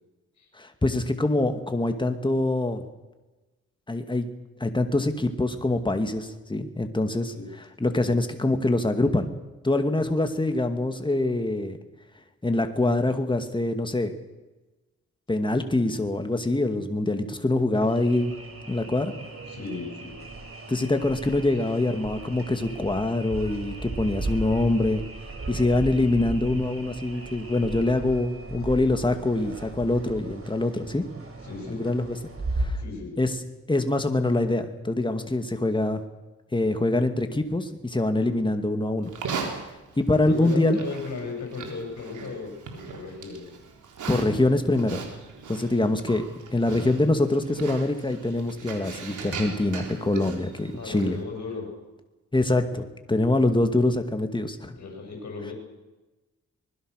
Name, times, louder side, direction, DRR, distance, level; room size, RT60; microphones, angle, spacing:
voice 1, 0.6-2.8 3.9-4.3 4.6-7.3 7.8-9.3 9.6-11.8 12.4-14.1 15.3-18.3 18.7-19.1 20.7-25.0 25.5-31.1 31.7-32.2 32.6-32.8 33.2-33.3 33.7-36.0 36.5-39.1 40.0-40.8 44.1-45.0 45.5-46.2 46.5-51.2 52.3-54.8, left 2 dB, 15° left, 7 dB, 2.5 m, -24 dB
sound 1, 17.7-32.7, right 2 dB, 50° right, 7.0 m, -37 dB
voice 2, 19.5-20.2 31.4-31.9 32.8-33.1 40.2-43.5 45.8-46.1 50.7-51.7 54.8-55.5, left 4 dB, 65° left, 1 dB, 6.8 m, -36 dB
Livestock farm animals working animals, 39.0-51.2, right 5 dB, 85° right, 4.1 m, -39 dB
24.5 x 21.0 x 6.7 m, 1.1 s
cardioid pair, 80°, 29 cm